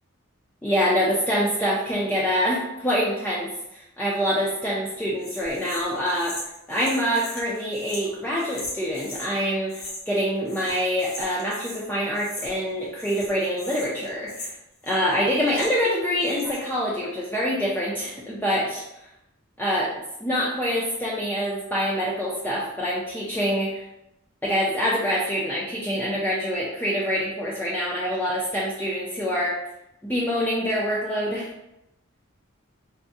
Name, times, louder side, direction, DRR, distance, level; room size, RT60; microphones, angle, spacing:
voice 1, 0.6-6.4 6.7-14.5 14.8-18.8 19.6-19.9 20.2-23.8 24.4-29.6 30.0-31.5, equal, 10° left, -7 dB, 0.4 m, -25 dB
sound 1, 5.2-9.3 9.7-10.2 10.4-11.8 12.1-12.7 13.0-15.9 16.2-16.7, left 1 dB, 75° left, 1.0 m, -39 dB
3.5 x 2.1 x 2.6 m, 0.84 s
head